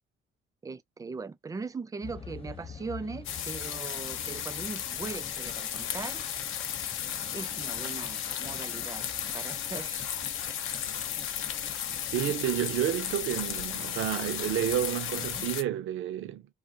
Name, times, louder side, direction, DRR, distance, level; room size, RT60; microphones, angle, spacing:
voice 1, 0.6-6.2 7.3-9.1 9.3-10.0, right 4 dB, 15° right, 0.3 m, -40 dB
sound 1, 2.0-15.6, left 5 dB, 30° left, 0.6 m, -47 dB
sound 2, 3.2-15.6, left 9 dB, 90° left, 0.5 m, -34 dB
voice 2, 12.1-16.5, right 12 dB, 80° right, 0.5 m, -30 dB
2.7 x 2.4 x 2.7 m
cardioid pair, 90°, 20 cm